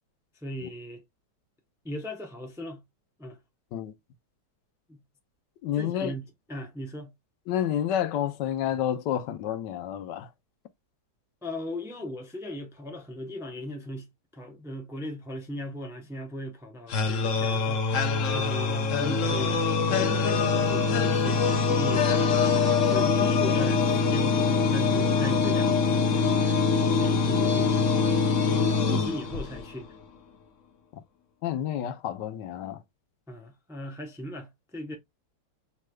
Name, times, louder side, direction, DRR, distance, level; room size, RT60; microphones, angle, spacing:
voice 1, 0.4-1.0 1.8-2.8 3.2-3.4 4.9-5.0 5.7-7.1 11.4-17.9 18.3-22.1 22.5-27.9 28.8-30.0 33.3-35.0, left 1 dB, 5° right, 0.5 m, -38 dB
voice 2, 5.6-6.1 7.5-10.3 28.7-28.8 31.4-32.8, left 10 dB, 85° left, 1.3 m, -29 dB
sound 1, 16.9-29.8, left 4 dB, 55° left, 1.0 m, -24 dB
5.7 x 3.2 x 2.2 m
omnidirectional pair, 1.8 m